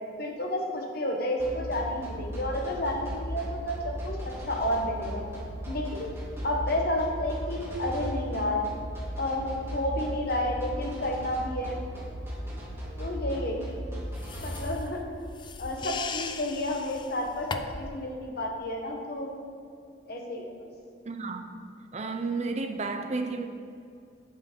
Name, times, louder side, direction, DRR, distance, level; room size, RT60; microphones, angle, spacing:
voice 1, 0.2-5.2 5.7-6.1 6.4-8.6 9.2-9.4 9.7-11.7 13.0-13.8 14.4-15.0 15.6-19.3 20.1-20.7, left 1 dB, 55° left, 1 dB, 1.4 m, -31 dB
sound 1, 1.4-14.6, equal, 15° right, 2.5 m, -37 dB
sound 2, 14.1-18.0, left 4 dB, 25° left, 0.4 m, -38 dB
voice 2, 21.0-21.5 21.9-23.5, right 3 dB, 35° right, 6 dB, 0.6 m, -32 dB
7.9 x 7.8 x 5.3 m, 2.4 s
head